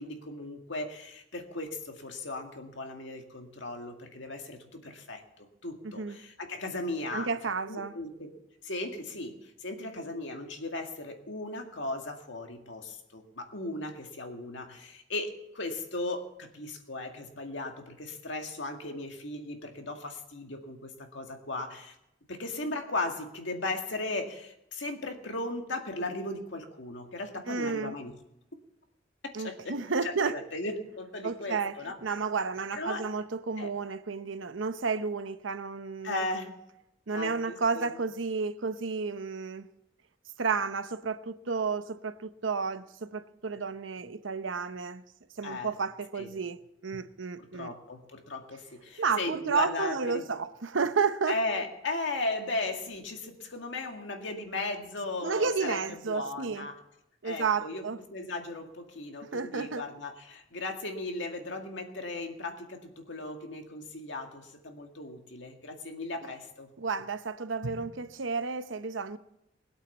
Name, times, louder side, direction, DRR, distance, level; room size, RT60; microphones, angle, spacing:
voice 1, 0.0-7.3 7.7-8.3 8.6-22.0 22.3-28.1 29.4-29.7 30.0-32.0 32.7-33.0 33.6-33.7 36.0-36.6 37.1-37.6 37.8-38.0 45.4-45.7 46.2-46.3 47.4-50.3 51.3-56.7 57.2-57.8 58.1-66.7, left 2 dB, 70° left, 2.1 m, -37 dB
voice 2, 5.8-6.2 7.1-7.9 27.5-28.0 29.3-30.4 31.2-31.8 32.0-36.2 37.1-39.7 40.4-45.0 45.4-47.7 49.0-51.4 55.2-56.7 57.2-58.0 59.2-59.8 66.8-69.2, right 5 dB, 80° right, 0.8 m, -31 dB
20.5 x 8.4 x 7.0 m
head